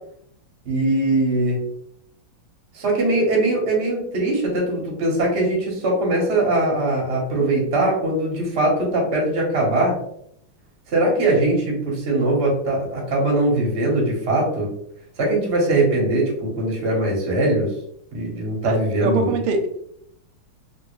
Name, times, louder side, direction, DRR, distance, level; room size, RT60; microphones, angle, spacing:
voice 1, 0.6-1.6 2.7-10.0 10.9-14.7 15.2-17.7 18.1-19.4, right 2 dB, 40° right, -2 dB, 1.0 m, -21 dB
voice 2, 18.7-19.7, right 3 dB, 85° right, 4 dB, 1.5 m, -23 dB
3.4 x 2.6 x 3.1 m, 0.71 s
omnidirectional pair, 2.4 m